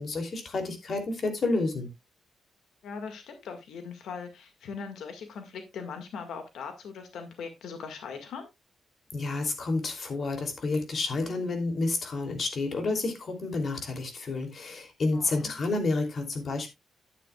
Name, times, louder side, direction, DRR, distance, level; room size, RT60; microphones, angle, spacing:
voice 1, 0.0-1.9 9.1-16.7, left 3 dB, 50° left, 2.9 m, -30 dB
voice 2, 2.8-8.5 15.1-15.5, left 5 dB, 90° left, 1.8 m, -40 dB
11.5 x 9.4 x 2.3 m
cardioid pair, 120°, 0 cm